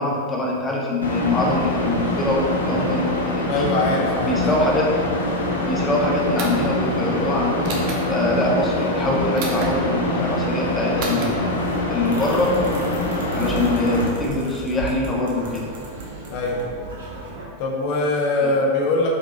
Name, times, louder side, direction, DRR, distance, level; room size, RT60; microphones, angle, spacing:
voice 1, 0.0-3.7 4.2-4.9 5.6-11.5 11.9-12.6 13.3-15.7 18.4-18.5, left 2 dB, 15° left, -3 dB, 1.4 m, -24 dB
sound 1, 1.0-14.1, left 1 dB, 75° left, 1.1 m, -24 dB
voice 2, 3.5-4.4 16.3-16.6 17.6-19.1, left 2 dB, 45° left, -1 dB, 1.3 m, -22 dB
Pressing spacebar on computer mechanical keyboard, 6.4-6.7 7.6-8.0 9.4-9.7 11.0-11.3, right 3 dB, 45° right, 1.1 m, -29 dB
sound 2, 11.3-17.4, right 3 dB, 60° right, 1.3 m, -35 dB
7.9 x 5.2 x 2.9 m, 2.1 s
figure-of-eight pair, 90°, 0 cm